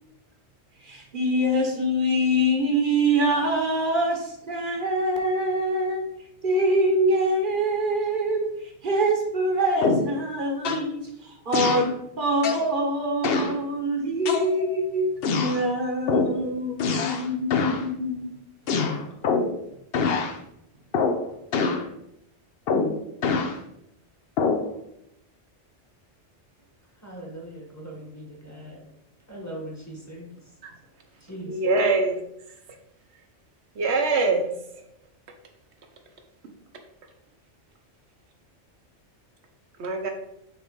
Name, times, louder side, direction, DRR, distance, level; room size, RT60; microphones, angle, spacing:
voice 1, 0.9-6.0 6.4-8.5 8.8-11.0 11.5-18.3, right 1 dB, 50° right, 1.1 m, -24 dB
sound 1, 9.8-10.2 10.6-10.9 11.5-11.9 12.4-12.7 13.2-13.6 14.3-14.8 15.2-15.6 16.1-16.4 16.8-17.3 17.5-17.8 18.7-19.6 19.9-20.3 20.9-21.2 21.5-21.9 22.7-23.6 24.4-24.7, left 4 dB, 60° left, 0.8 m, -24 dB
voice 2, 27.0-28.8 29.3-30.3 31.2-31.5, right 1 dB, 15° left, 1.3 m, -39 dB
voice 3, 31.5-32.2 33.8-34.5 39.8-40.1, right 3 dB, 70° right, 1.2 m, -23 dB
6.3 x 3.3 x 4.5 m
omnidirectional pair, 1.2 m